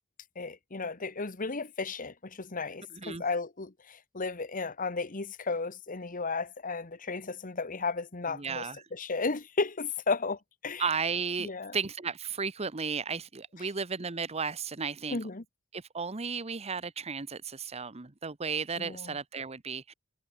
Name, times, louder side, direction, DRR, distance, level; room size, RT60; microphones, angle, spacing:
voice 1, 0.3-8.6 8.9-10.8 11.4-11.8 15.1-15.4 18.8-19.1, left 4 dB, 40° left, 1.4 m, -34 dB
voice 2, 2.9-3.2 8.3-8.8 10.8-15.2 15.7-19.9, right 5 dB, 30° right, 1.0 m, -34 dB
head